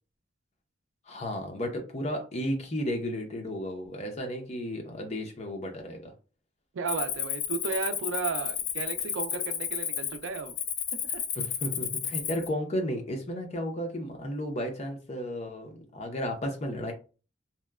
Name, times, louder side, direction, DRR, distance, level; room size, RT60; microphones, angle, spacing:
voice 1, 1.1-6.1 11.3-16.9, equal, 35° left, 2 dB, 0.6 m, -33 dB
voice 2, 6.7-10.6 11.0-11.2, right 5 dB, 85° right, 8 dB, 0.4 m, -34 dB
Cricket, 6.9-12.5, left 9 dB, 85° left, 0.4 m, -32 dB
2.8 x 2.1 x 2.3 m, 0.35 s
head